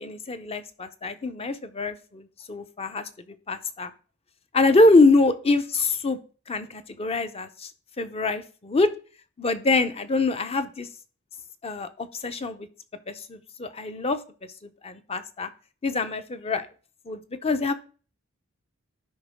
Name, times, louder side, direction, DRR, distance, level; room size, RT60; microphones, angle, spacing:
voice 1, 0.0-3.0 3.5-3.9 4.5-6.2 6.5-7.7 8.0-8.9 9.4-10.9 11.6-12.7 13.1-14.2 14.8-15.5 15.8-16.7 17.1-17.7, left 3 dB, 30° left, 10 dB, 0.6 m, -24 dB
12.0 x 5.1 x 3.5 m, 0.39 s
head